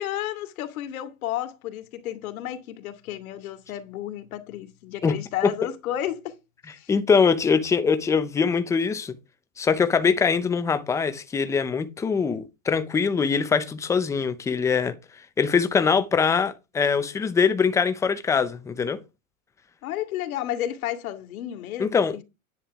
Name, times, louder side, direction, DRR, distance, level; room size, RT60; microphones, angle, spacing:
voice 1, 0.0-6.4 6.8-6.9 19.8-22.0, left 12 dB, 75° left, 2.3 m, -32 dB
voice 2, 6.9-9.1 9.6-14.9 15.4-19.0 21.8-22.2, left 5 dB, 5° left, 0.6 m, -23 dB
10.0 x 9.4 x 3.6 m
supercardioid pair, 160°, 43 cm